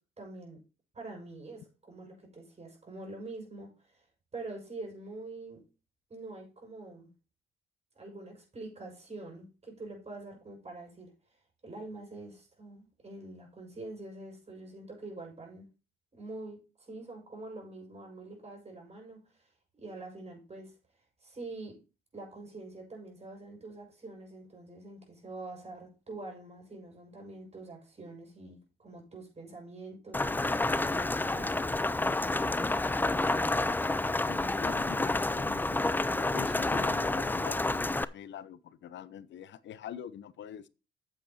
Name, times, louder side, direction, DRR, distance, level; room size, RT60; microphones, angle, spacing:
voice 1, 0.2-0.6 0.9-3.7 4.3-5.6 6.1-7.1 7.9-11.1 11.6-15.7 16.1-19.2 19.7-20.7 21.2-21.7 22.1-31.9 32.3-32.7, right 2 dB, 30° right, 6.3 m, -45 dB
Rain, 30.1-38.0, left 2 dB, 10° left, 0.4 m, -29 dB
voice 2, 34.3-40.7, left 9 dB, 65° left, 0.8 m, -44 dB
8.3 x 8.2 x 4.3 m
cardioid pair, 90°, 20 cm